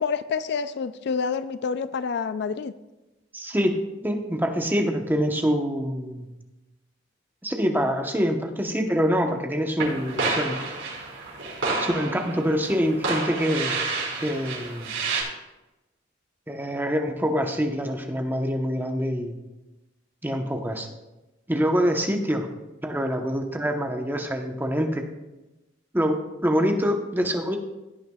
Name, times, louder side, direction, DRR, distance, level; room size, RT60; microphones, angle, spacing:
voice 1, 0.0-2.7, left 5 dB, 65° left, 13 dB, 0.4 m, -28 dB
voice 2, 3.3-6.3 7.4-10.6 11.8-13.8 14.2-14.9 16.5-19.3 20.2-20.9 21.5-22.5 22.8-25.0 25.9-27.6, equal, 10° right, 4 dB, 1.0 m, -25 dB
sound 1, 9.8-15.2, right 3 dB, 85° right, 4.1 m, -29 dB
16.0 x 9.0 x 2.4 m, 1.0 s
head